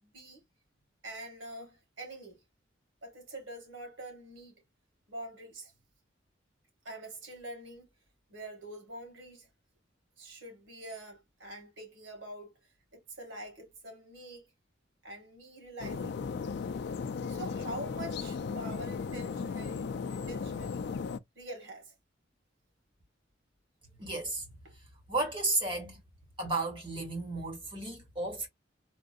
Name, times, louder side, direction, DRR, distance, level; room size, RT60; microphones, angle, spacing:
voice 1, 0.0-0.4 1.0-2.4 3.0-4.6 5.1-5.7 6.8-7.9 8.3-9.5 10.2-12.6 12.9-14.5 15.0-16.2 17.3-20.8 21.4-21.9 24.6-24.7, right 1 dB, 90° right, 2.1 m, -45 dB
sound 1, 15.8-21.2, left 5 dB, 60° left, 0.4 m, -36 dB
voice 2, 24.0-24.4 25.1-26.0 26.4-28.5, right 2 dB, 30° right, 1.5 m, -33 dB
3.6 x 2.4 x 2.6 m
head